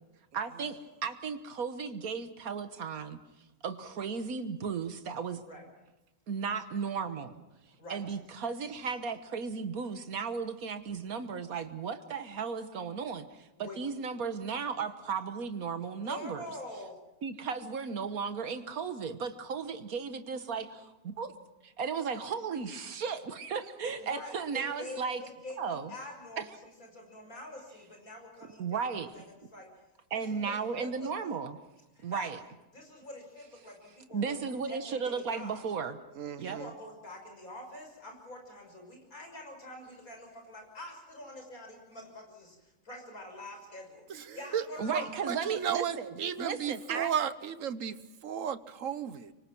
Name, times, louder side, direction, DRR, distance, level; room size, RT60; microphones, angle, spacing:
voice 1, 0.3-3.2 3.6-5.4 6.3-7.3 7.9-16.4 17.2-21.3 21.6-25.2 25.6-25.9 26.4-26.5 28.6-29.1 30.1-31.6 32.0-32.4 34.1-36.0 36.4-36.6 44.8-46.1 46.4-47.1, right 5 dB, 85° right, 9 dB, 1.8 m, -35 dB
voice 2, 16.0-16.9 24.0-29.2 29.5-29.7 30.1-31.3 31.9-32.3 32.7-34.3 34.7-35.6 36.4-42.6 42.8-44.1 44.3-45.1, left 1 dB, 85° left, 2 dB, 6.6 m, -46 dB
voice 3, 36.2-36.7 44.1-44.7 44.9-49.3, right 8 dB, 70° right, 13 dB, 1.4 m, -34 dB
25.5 x 24.0 x 6.1 m, 0.98 s
omnidirectional pair, 1.5 m